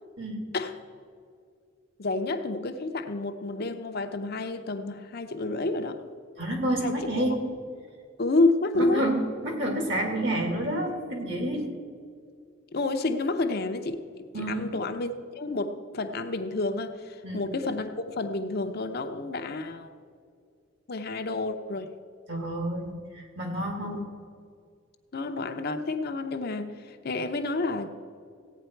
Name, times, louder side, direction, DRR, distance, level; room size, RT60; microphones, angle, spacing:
voice 1, 2.0-6.0 6.8-7.3 8.2-9.1 12.7-19.9 20.9-21.9 23.8-24.1 25.1-27.9, left 2 dB, 50° left, 7 dB, 0.7 m, -29 dB
voice 2, 6.4-7.4 8.7-9.2 9.4-11.7 14.3-14.7 17.2-17.5 22.3-24.0, right 1 dB, 60° right, 2 dB, 2.3 m, -29 dB
16.0 x 9.2 x 4.5 m, 2.2 s
head